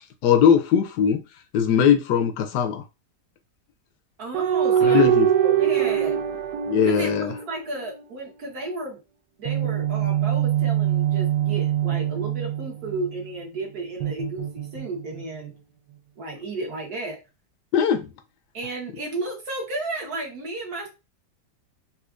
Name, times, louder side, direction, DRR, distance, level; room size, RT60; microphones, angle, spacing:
voice 1, 0.2-1.2 1.5-2.8 4.8-5.3 6.7-7.3 17.7-18.1, left 8 dB, 75° left, 1.1 m, -20 dB
voice 2, 4.2-6.2 6.8-9.0 9.4-15.5 16.2-17.2 18.5-20.9, right 2 dB, 65° right, 1.6 m, -33 dB
sound 1, 4.3-8.0 9.5-13.2 14.0-15.2, right 10 dB, 80° right, 1.2 m, -23 dB
4.2 x 2.5 x 2.4 m
omnidirectional pair, 1.8 m